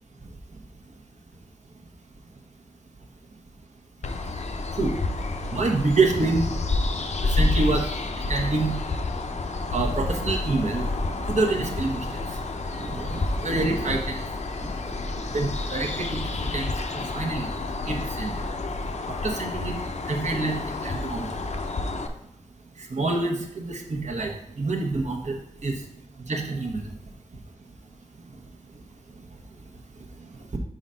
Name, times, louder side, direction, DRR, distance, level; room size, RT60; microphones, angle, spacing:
sound 1, 4.0-22.1, left 2 dB, 65° left, 0.6 m, -29 dB
voice 1, 5.5-6.5 7.3-7.8 8.3-8.8 9.7-10.9 11.3-12.2 12.8-14.2 15.3-17.5 17.9-18.3 19.2-19.7 20.0-20.6 20.8-21.3 22.9-24.3 24.6-25.4 25.6-25.8 26.2-26.8, right 3 dB, 70° right, 1 dB, 1.1 m, -26 dB
5.2 x 4.0 x 5.6 m, 0.76 s
wide cardioid pair, 100°, 13 cm